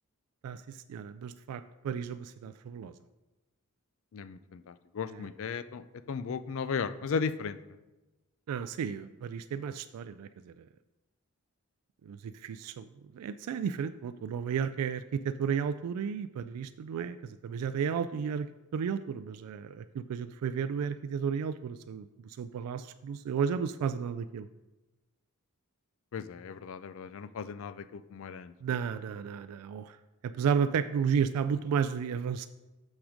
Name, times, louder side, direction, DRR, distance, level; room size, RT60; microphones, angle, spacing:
voice 1, 0.4-2.9 5.1-5.3 8.5-10.6 12.0-12.9 13.1-18.5 18.7-24.5 28.6-30.0 30.2-32.5, right 7 dB, 90° right, 13 dB, 0.3 m, -33 dB
voice 2, 4.1-7.6 26.1-28.5, left 5 dB, 60° left, 14 dB, 0.4 m, -36 dB
6.4 x 6.0 x 5.0 m, 1.1 s
head